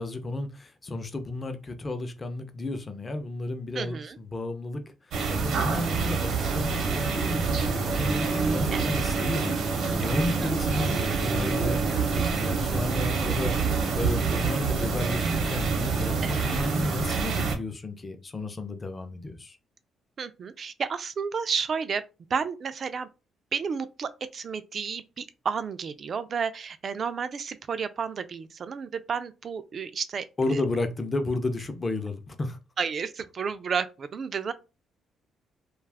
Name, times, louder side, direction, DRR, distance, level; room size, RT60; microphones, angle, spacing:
voice 1, 0.0-4.8 5.3-13.6 13.9-19.6 30.4-32.6, left 2 dB, 30° left, 0.6 m, -32 dB
voice 2, 3.7-4.2 8.7-9.0 10.4-10.5 10.8-10.9 16.2-16.4 20.2-22.0 22.3-23.1 23.5-30.6 32.8-34.5, right 6 dB, 50° right, 0.4 m, -32 dB
sound 1, 5.1-17.5, right 4 dB, 70° right, 0.8 m, -26 dB
2.4 x 2.3 x 3.3 m
cardioid pair, 90°, 0 cm